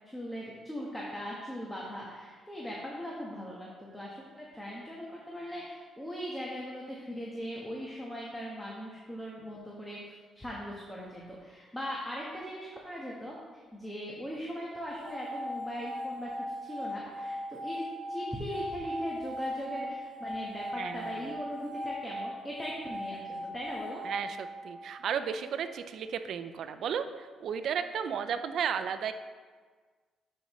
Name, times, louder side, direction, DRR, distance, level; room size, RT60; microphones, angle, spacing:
voice 1, 0.1-13.4 13.7-16.3 16.6-24.0, equal, 10° left, -4 dB, 1.3 m, -39 dB
sound 1, 14.9-25.1, equal, 20° right, 2.0 m, -39 dB
voice 2, 20.8-21.1 24.0-29.1, right 7 dB, 70° right, 10 dB, 0.5 m, -34 dB
11.0 x 5.4 x 3.1 m, 1.5 s
cardioid pair, 90°, 0 cm